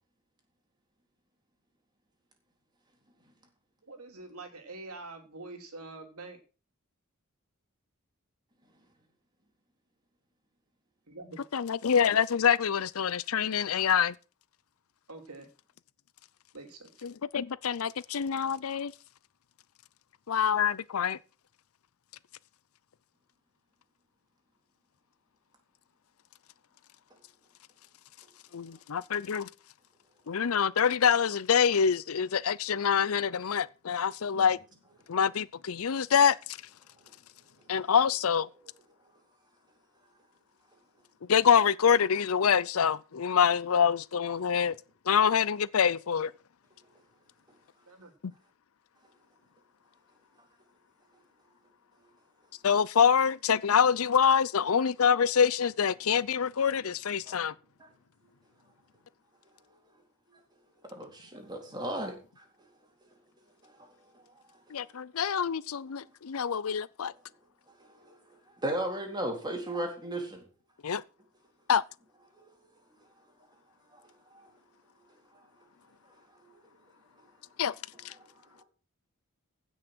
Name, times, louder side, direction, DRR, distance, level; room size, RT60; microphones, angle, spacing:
voice 1, 3.9-6.4 11.1-11.4 15.1-15.5 16.5-17.0 47.9-48.1, right 3 dB, 85° right, 3.0 m, -45 dB
voice 2, 11.5-14.1 17.0-18.9 20.3-21.2 28.5-29.5 30.3-34.6 35.1-36.6 37.7-38.5 41.3-44.8 45.1-46.3 52.6-57.5 64.7-67.1 70.8-71.0 71.7-71.8 77.6-77.7 78.0-78.1, left 7 dB, 70° left, 0.5 m, -26 dB
voice 3, 60.9-62.4 63.6-63.9 64.7-64.8 67.8-68.2 68.6-70.4 72.4-72.5 73.9-74.0 74.3-74.5 78.2-78.3, right 1 dB, 20° right, 3.9 m, -36 dB
16.0 x 6.3 x 6.2 m
head